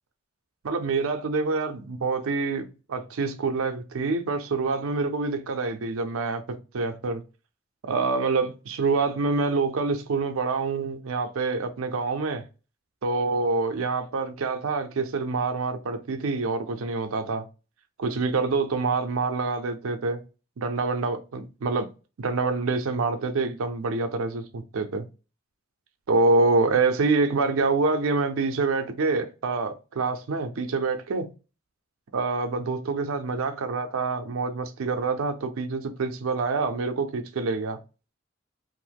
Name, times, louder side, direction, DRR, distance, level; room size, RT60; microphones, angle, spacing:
voice 1, 0.6-7.2 7.8-12.4 13.0-17.5 18.0-20.2 20.6-21.9 22.2-25.1 26.1-31.3 32.1-37.8, right 3 dB, 90° right, 0.5 m, -26 dB
3.0 x 2.0 x 3.3 m
head